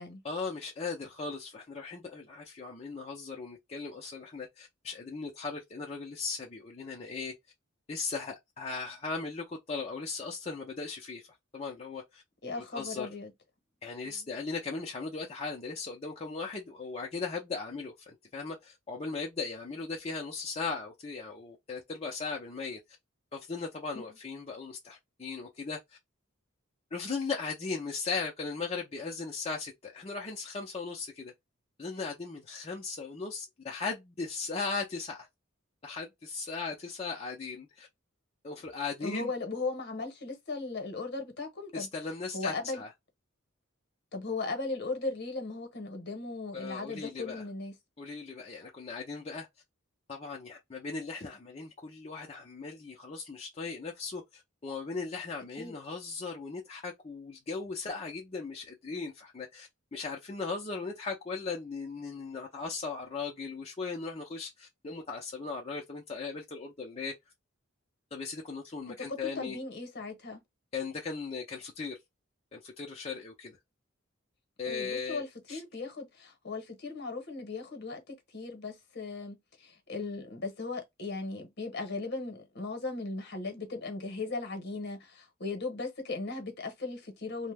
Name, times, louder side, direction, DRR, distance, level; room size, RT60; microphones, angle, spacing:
voice 1, 0.2-7.3 7.9-11.3 11.5-12.2 12.6-13.1 13.8-22.8 23.3-26.0 26.9-31.3 31.8-35.3 35.8-37.9 38.4-39.3 41.7-42.9 46.5-47.4 48.0-49.5 50.1-67.1 68.1-69.6 70.7-72.0 72.5-73.6 74.6-75.6, left 4 dB, 30° left, 0.5 m, -38 dB
voice 2, 12.4-13.3 14.0-14.3 23.9-24.1 39.0-41.9 42.3-42.8 44.1-47.7 55.6-55.7 68.9-70.4 74.7-87.5, left 3 dB, 55° left, 1.0 m, -37 dB
2.7 x 2.1 x 3.3 m
head